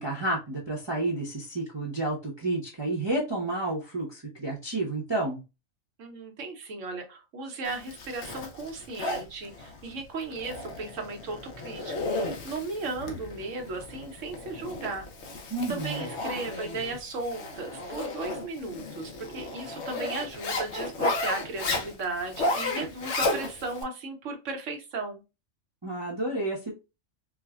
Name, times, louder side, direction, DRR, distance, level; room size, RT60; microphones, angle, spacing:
voice 1, 0.0-5.4 15.5-16.1 25.8-26.7, right 2 dB, 25° right, -3 dB, 0.7 m, -30 dB
voice 2, 6.0-15.1 15.7-25.2, right 3 dB, 75° right, 4 dB, 1.2 m, -36 dB
Zipper (clothing), 7.7-23.8, left 2 dB, 65° left, 1.0 m, -34 dB
4.6 x 2.1 x 2.3 m, 0.27 s
omnidirectional pair, 1.3 m